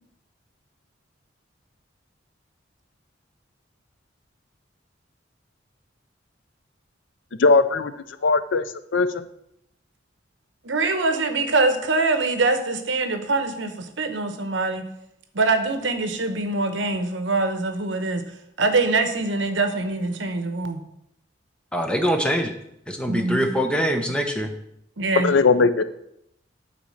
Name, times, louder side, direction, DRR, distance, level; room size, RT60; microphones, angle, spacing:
voice 1, 7.4-7.9 8.2-8.6 8.9-9.2 25.2-25.8, left 4 dB, 75° left, 13 dB, 0.5 m, -18 dB
voice 2, 10.6-14.9 15.3-18.2 18.6-20.8 23.1-23.5 25.0-25.3, right 3 dB, 75° right, 8 dB, 0.9 m, -24 dB
voice 3, 21.7-22.5 22.9-24.5, equal, 5° left, 5 dB, 0.8 m, -23 dB
8.6 x 4.3 x 6.4 m, 0.77 s
head